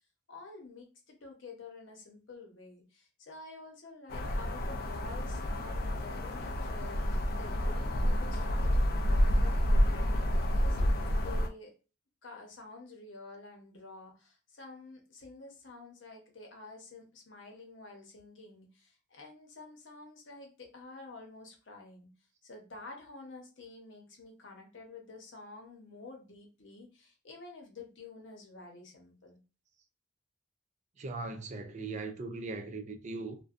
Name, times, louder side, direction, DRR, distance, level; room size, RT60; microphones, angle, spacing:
voice 1, 0.3-11.7 12.2-22.1 22.4-29.4, left 3 dB, 75° left, 0.8 m, -50 dB
sound 1, 4.1-11.5, equal, 50° left, 0.4 m, -29 dB
voice 2, 31.0-33.4, right 3 dB, 40° right, 0.4 m, -39 dB
2.5 x 2.2 x 2.4 m
head